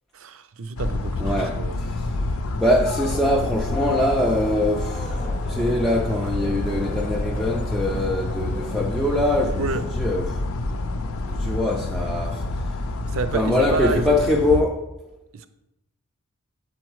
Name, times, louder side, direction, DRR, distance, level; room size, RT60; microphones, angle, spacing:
voice 1, 0.1-1.8 9.6-9.8 13.1-14.2 15.3-15.5, right 3 dB, 65° right, 0.5 m, -29 dB
sound 1, 0.8-14.6, left 2 dB, 75° left, 0.5 m, -28 dB
voice 2, 1.2-2.2 2.6-9.7 9.9-10.4 11.3-12.8 13.3-14.9, left 1 dB, ahead, 0.3 m, -23 dB
sound 2, 3.0-9.9, left 2 dB, 35° left, 0.7 m, -36 dB
8.0 x 4.4 x 4.7 m
head